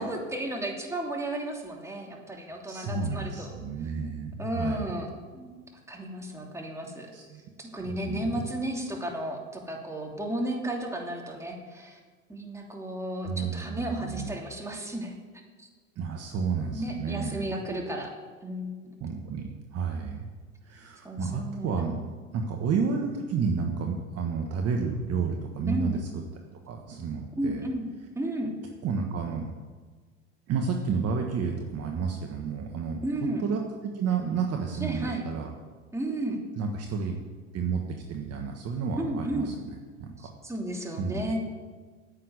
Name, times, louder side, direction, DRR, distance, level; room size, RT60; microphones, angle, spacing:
voice 1, 0.0-3.5 4.4-5.5 5.9-7.1 7.6-12.0 12.3-15.2 15.6-15.7 16.7-18.1 18.4-18.9 21.0-21.8 25.7-26.0 27.3-27.8 28.1-28.5 33.0-33.4 34.8-35.2 35.9-36.4 39.0-39.5 40.2-41.4, right 1 dB, 5° right, 0 dB, 2.9 m, -33 dB
voice 2, 2.6-4.9 7.1-7.4 7.8-8.4 13.2-14.4 16.0-17.5 19.0-20.3 20.6-26.2 26.7-27.6 28.8-29.5 30.5-33.0 33.4-35.5 36.6-37.2 37.5-37.8 38.1-40.3 41.0-41.4, right 5 dB, 35° right, 3 dB, 1.5 m, -31 dB
10.0 x 8.5 x 9.6 m, 1.4 s
hypercardioid pair, 85°, 40 cm